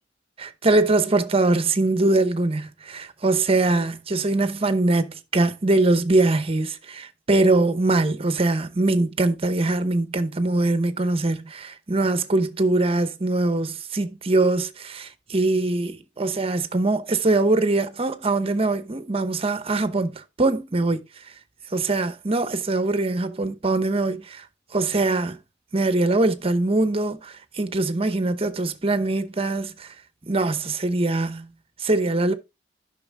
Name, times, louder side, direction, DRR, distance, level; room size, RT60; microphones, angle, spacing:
voice 1, 0.4-21.0 21.7-24.4 24.7-25.4 25.7-29.9 30.3-31.5 31.8-32.3, right 2 dB, 35° right, 0.9 m, -22 dB
11.0 x 6.1 x 3.5 m
head